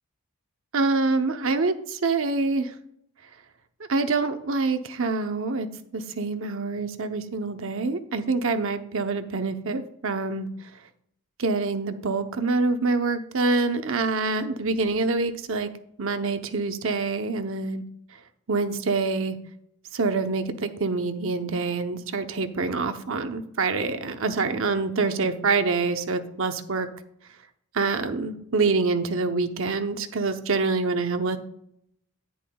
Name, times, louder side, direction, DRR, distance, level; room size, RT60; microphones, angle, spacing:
voice 1, 0.7-2.7 3.9-5.7 5.9-10.5 11.4-15.7 16.0-17.8 18.5-19.4 19.9-26.9 27.7-31.4, right 3 dB, 60° right, 7 dB, 0.8 m, -26 dB
10.5 x 10.0 x 2.3 m, 0.70 s
head